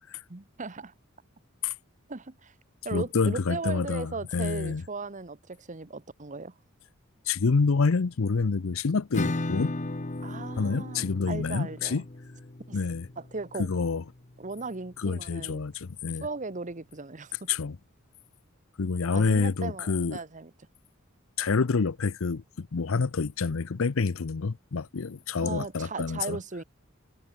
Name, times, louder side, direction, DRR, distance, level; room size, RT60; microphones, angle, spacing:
voice 1, 0.3-0.9 2.1-2.5 2.8-6.5 10.2-12.0 12.7-12.8 13.2-13.7 14.4-15.6 16.2-17.5 19.1-20.5 25.4-26.6, right 3 dB, 35° right, 1.1 m, -37 dB
voice 2, 2.9-4.8 7.3-9.7 10.6-12.0 12.7-13.1 13.6-14.0 15.0-16.3 17.5-17.8 18.8-20.2 21.4-26.4, left 4 dB, 75° left, 0.6 m, -27 dB
Acoustic guitar / Strum, 9.1-14.6, left 2 dB, 35° left, 1.0 m, -36 dB
head